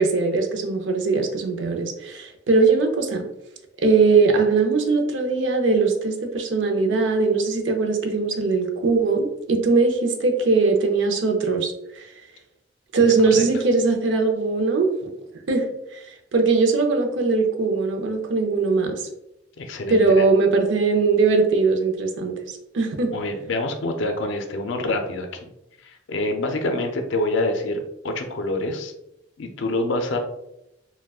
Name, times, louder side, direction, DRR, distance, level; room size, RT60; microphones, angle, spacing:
voice 1, 0.0-3.3 3.8-12.1 12.9-14.9 15.5-15.6 15.9-16.0 16.3-19.1 19.9-23.1, right 4 dB, 70° right, 3 dB, 0.5 m, -20 dB
voice 2, 19.6-20.2 23.1-25.5 25.8-28.9 29.4-30.2, left 2 dB, 70° left, 4 dB, 0.4 m, -26 dB
3.5 x 2.1 x 2.3 m, 0.84 s
head